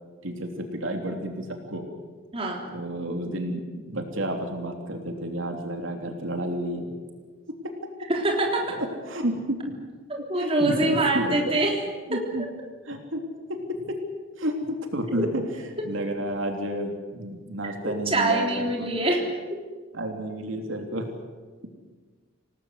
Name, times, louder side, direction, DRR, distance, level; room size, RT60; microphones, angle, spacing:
voice 1, 0.2-1.9 2.7-6.9 8.8-9.7 10.4-11.6 12.1-12.4 12.8-13.2 13.5-14.0 14.4-15.4 15.8-18.9 19.9-21.1, equal, 70° right, 3 dB, 3.3 m, -31 dB
voice 2, 2.3-2.7 8.1-8.8 10.1-11.8 12.1-12.5 15.1-15.3 15.8-15.9 17.8-19.2 19.5-19.6, right 2 dB, 25° right, 0 dB, 3.6 m, -25 dB
28.0 x 19.0 x 8.2 m, 1.4 s
head